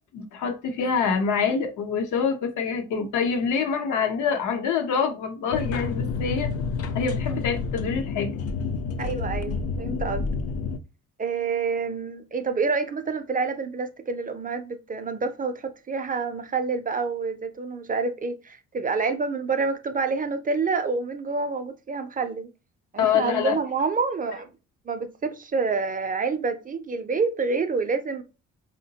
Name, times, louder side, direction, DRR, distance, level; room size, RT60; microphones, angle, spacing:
voice 1, 0.1-6.5 6.9-8.3 23.0-23.6, left 6 dB, 80° left, 0.8 m, -25 dB
sound 1, 5.5-10.8, left 4 dB, 55° left, 0.5 m, -29 dB
voice 2, 9.0-10.2 11.2-22.5 22.9-24.5 24.9-28.2, right 4 dB, 30° right, 0.4 m, -28 dB
3.7 x 2.1 x 2.7 m
cardioid pair, 90°, 30 cm